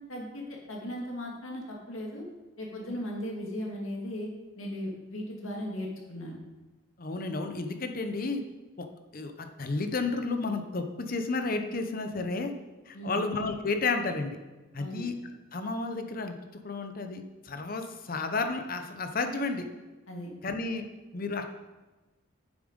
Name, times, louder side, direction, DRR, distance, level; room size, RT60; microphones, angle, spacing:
voice 1, 0.1-2.2 2.6-4.3 4.6-6.4 12.9-13.2 14.8-15.0 20.1-20.3, left 1 dB, 80° left, -1 dB, 2.1 m, -37 dB
voice 2, 7.0-8.4 8.8-8.9 9.1-12.5 12.9-14.4 14.7-15.1 15.5-16.3 16.6-19.6 20.4-20.8 21.1-21.5, left 3 dB, 45° left, 7 dB, 0.7 m, -32 dB
7.5 x 7.2 x 5.1 m, 1.2 s
head